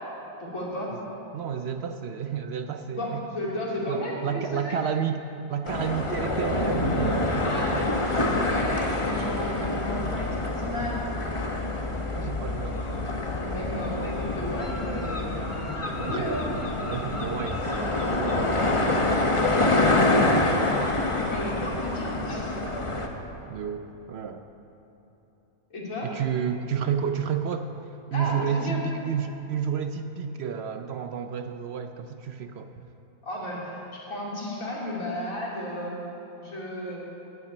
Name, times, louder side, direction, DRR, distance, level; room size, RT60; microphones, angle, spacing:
voice 1, 0.4-0.9 2.9-4.8 7.4-11.0 13.4-16.4 19.9-22.6 25.7-26.1 28.1-28.8 33.2-35.9 36.4-37.0, left 1 dB, 80° left, -5 dB, 3.2 m, -33 dB
voice 2, 1.3-3.3 3.9-7.9 12.1-13.3 16.0-19.5 23.5-24.4 26.0-27.7 28.1-32.8, right 7 dB, 60° right, 7 dB, 0.8 m, -31 dB
sound 1, 5.6-23.1, left 2 dB, 25° left, 0.9 m, -26 dB
11.0 x 9.0 x 9.3 m, 3.0 s
omnidirectional pair, 1.4 m